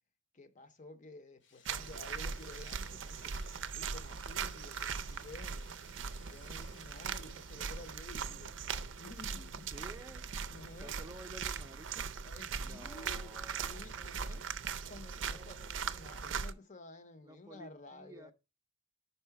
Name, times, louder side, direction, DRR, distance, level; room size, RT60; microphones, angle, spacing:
voice 1, 0.3-3.3 3.7-5.6 5.9-9.7 10.5-11.0 12.2-13.3 13.7-15.6 15.9-18.3, left 2 dB, 40° left, 0.6 m, -53 dB
Drill, 1.4-9.3, left 6 dB, 65° left, 0.9 m, -63 dB
sound 1, 1.6-16.5, right 6 dB, 75° right, 0.5 m, -40 dB
voice 2, 9.7-12.1 12.6-13.8 15.2-16.4 17.2-18.3, right 1 dB, 15° right, 0.5 m, -53 dB
5.5 x 4.2 x 5.7 m
head